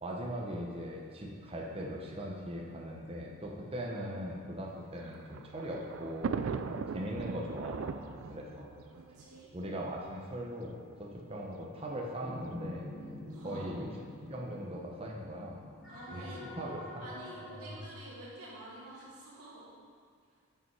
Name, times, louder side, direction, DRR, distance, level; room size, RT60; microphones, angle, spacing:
voice 1, 0.0-8.7 9.5-12.9 13.4-13.9 14.3-15.6 16.1-17.0, equal, 25° right, -2 dB, 0.9 m, -40 dB
Thunder, 4.8-10.1 10.9-11.0 11.3-11.4 12.4-12.7, right 5 dB, 60° right, 0.3 m, -39 dB
voice 2, 8.9-9.5 13.3-13.7 15.9-16.5 16.8-19.7, right 1 dB, 90° right, -7 dB, 2.2 m, -49 dB
sound 1, 12.2-17.8, left 1 dB, ahead, 2.1 m, -46 dB
8.1 x 6.3 x 4.7 m, 2.1 s
head